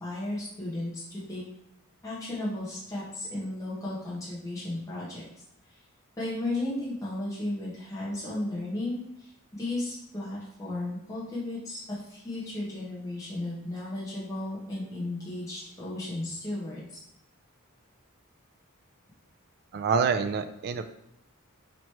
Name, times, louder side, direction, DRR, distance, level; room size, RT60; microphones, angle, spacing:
voice 1, 0.0-1.4 2.0-5.2 5.7-5.8 6.2-17.0, left 1 dB, 15° left, -8 dB, 0.9 m, -34 dB
voice 2, 19.7-20.8, right 5 dB, 45° right, 9 dB, 0.3 m, -26 dB
3.1 x 2.9 x 4.4 m, 0.82 s
head